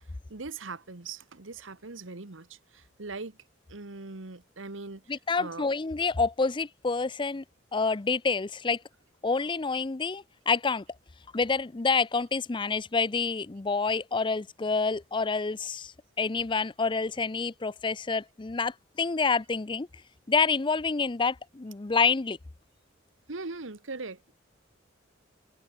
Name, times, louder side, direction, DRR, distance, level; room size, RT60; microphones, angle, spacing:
voice 1, 0.3-3.4 3.7-5.0 5.4-5.8 23.3-24.3, right 3 dB, 85° right, 1.5 m, -40 dB
voice 2, 5.1-7.4 7.7-8.8 9.2-10.8 11.3-19.9 20.3-22.4, left 4 dB, 25° left, 0.5 m, -28 dB
head